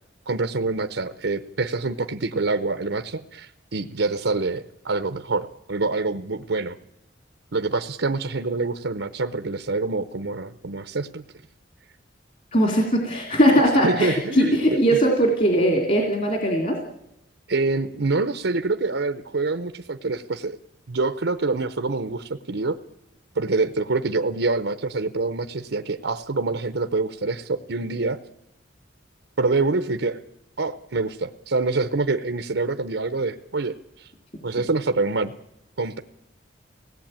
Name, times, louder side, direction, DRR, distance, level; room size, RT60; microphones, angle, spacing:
voice 1, 0.3-6.8 7.5-11.2 13.8-15.0 17.5-20.6 20.9-22.8 23.3-28.2 29.4-30.2 30.6-34.1 34.4-35.3 35.8-36.0, right 3 dB, 85° right, 8 dB, 0.8 m, -26 dB
voice 2, 12.5-16.8, equal, 45° left, 2 dB, 2.8 m, -20 dB
23.5 x 18.0 x 8.9 m, 0.89 s
head